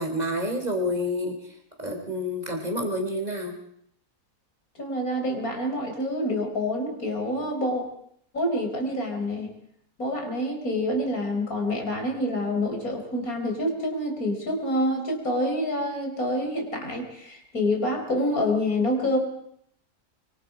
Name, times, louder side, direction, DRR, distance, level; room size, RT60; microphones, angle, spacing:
voice 1, 0.0-1.5 1.8-3.6, left 1 dB, 25° right, 3 dB, 3.9 m, -28 dB
voice 2, 4.8-7.8 8.3-9.5 10.0-19.2, left 1 dB, 65° left, 2 dB, 5.0 m, -27 dB
25.0 x 24.0 x 5.1 m, 0.71 s
omnidirectional pair, 1.6 m